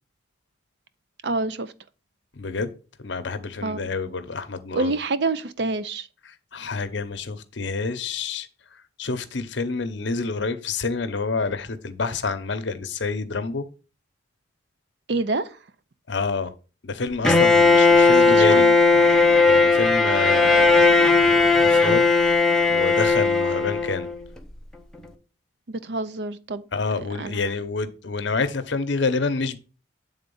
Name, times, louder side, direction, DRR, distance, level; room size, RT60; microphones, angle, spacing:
voice 1, 1.2-1.7 3.6-3.9 4.7-6.1 15.1-15.6 18.3-18.8 25.7-26.6 27.0-27.4, right 3 dB, 55° right, 0.5 m, -27 dB
voice 2, 2.4-2.7 3.0-4.9 6.2-13.7 16.1-16.5 16.8-18.7 19.5-20.9 21.2-22.1 22.7-24.1 26.7-29.6, left 4 dB, 65° left, 0.8 m, -28 dB
Bowed string instrument, 17.2-24.2, left 3 dB, 5° left, 0.7 m, -17 dB
8.1 x 3.8 x 5.4 m
head